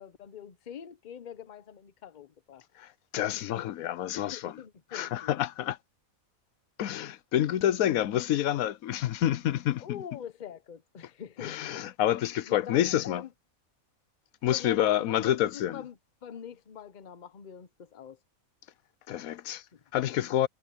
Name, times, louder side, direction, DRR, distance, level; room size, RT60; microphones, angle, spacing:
voice 1, 0.0-2.6 3.3-3.4 4.1-5.4 9.8-11.6 12.5-13.3 14.5-18.2 19.7-19.8, left 8 dB, 40° left, 0.8 m, -44 dB
voice 2, 2.8-4.5 4.9-5.8 6.8-10.0 11.4-13.2 14.4-15.8 19.1-19.6 19.9-20.5, left 12 dB, 90° left, 1.1 m, -28 dB
omnidirectional pair, 1.5 m